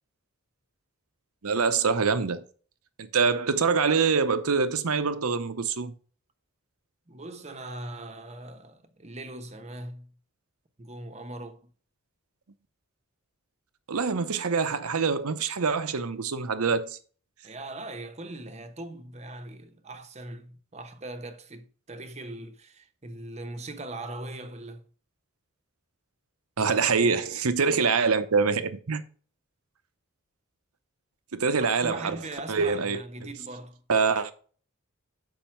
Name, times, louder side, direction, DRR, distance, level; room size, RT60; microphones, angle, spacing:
voice 1, 1.4-2.4 3.0-5.9 13.9-17.0 26.6-29.0 31.3-32.2 32.5-33.0 33.9-34.3, right 5 dB, 90° right, 0.8 m, -25 dB
voice 2, 7.1-10.1 10.8-11.7 17.4-24.8 26.6-27.2 31.6-33.8, right 2 dB, 30° right, 0.9 m, -40 dB
7.3 x 5.4 x 4.4 m
head